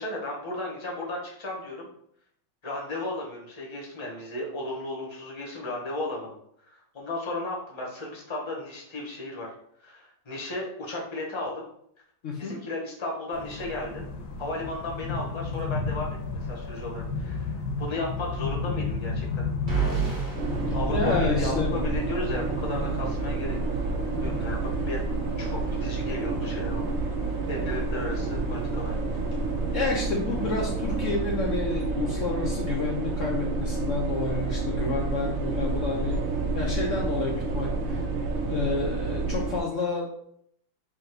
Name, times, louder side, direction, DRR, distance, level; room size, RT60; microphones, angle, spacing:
voice 1, 0.0-1.9 2.6-6.4 6.7-9.5 9.8-11.6 12.4-14.0 14.4-16.2 16.5-19.4 20.7-23.6 24.1-25.0 25.4-26.8 27.5-28.9, left 2 dB, 25° left, -2 dB, 0.6 m, -34 dB
voice 2, 12.2-12.6 20.7-21.7 29.7-36.2 36.5-38.0 38.5-40.1, left 4 dB, 90° left, -2 dB, 0.6 m, -29 dB
sound 1, 13.3-31.1, left 4 dB, 65° left, 1.1 m, -35 dB
sound 2, 19.7-21.8, right 6 dB, 40° right, 0.7 m, -30 dB
sound 3, 20.4-39.6, right 3 dB, 85° right, 0.7 m, -29 dB
3.6 x 2.8 x 4.6 m, 0.69 s
omnidirectional pair, 2.1 m